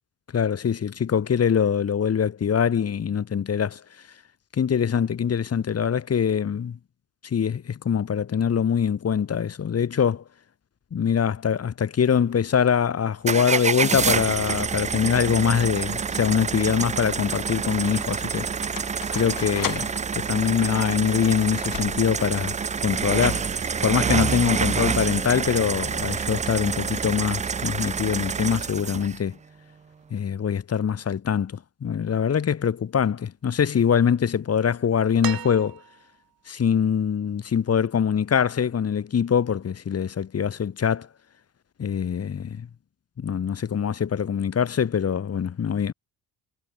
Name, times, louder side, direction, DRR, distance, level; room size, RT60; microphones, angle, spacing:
voice 1, 0.3-3.8 4.6-6.8 7.2-10.2 10.9-18.5 19.1-19.8 20.2-22.6 22.8-23.5 23.8-29.4 30.1-35.8 36.5-41.1 41.8-42.7 43.2-45.9, left 7 dB, 40° left, 2.0 m, -23 dB
sound 1, 13.3-29.2, right 6 dB, 20° right, 0.4 m, -27 dB
sound 2, 17.1-22.4, left 11 dB, 60° left, 3.6 m, -39 dB
sound 3, 35.2-36.2 37.8-37.9, right 13 dB, 70° right, 2.9 m, -35 dB
cardioid pair, 100°, 37 cm